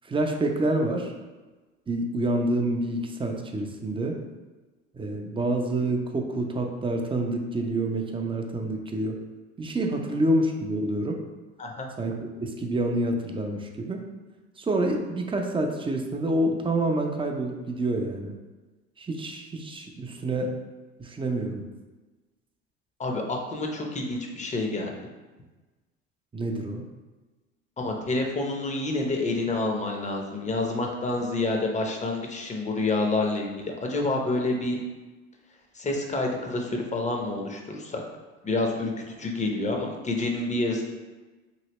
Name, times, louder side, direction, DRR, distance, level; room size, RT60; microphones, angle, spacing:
voice 1, 0.0-1.1 1.9-4.2 4.9-9.2 9.6-11.2 12.0-14.0 14.6-18.3 19.0-20.5 21.0-21.6 26.3-26.8, right 1 dB, 15° right, 2 dB, 0.5 m, -27 dB
voice 2, 23.0-24.9 27.8-34.8 35.8-38.0 38.4-40.8, left 2 dB, 20° left, 1 dB, 0.7 m, -28 dB
3.2 x 2.7 x 2.9 m, 1.2 s
hypercardioid pair, 70°, 35 cm